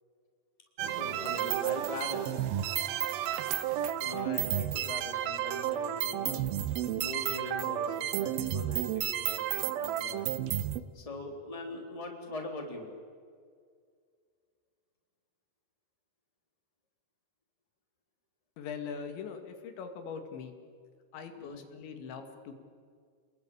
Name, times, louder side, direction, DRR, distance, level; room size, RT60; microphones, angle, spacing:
sound 1, 0.8-10.8, right 12 dB, 75° right, 2.3 m, -32 dB
voice 1, 0.9-2.3 4.0-6.4 6.9-10.3 10.9-12.9 21.4-21.6, left 2 dB, 10° left, 3 dB, 2.8 m, -41 dB
voice 2, 18.6-20.5 21.1-22.5, left 6 dB, 85° left, 6 dB, 4.4 m, -41 dB
29.0 x 20.5 x 8.7 m, 2.1 s
omnidirectional pair, 5.1 m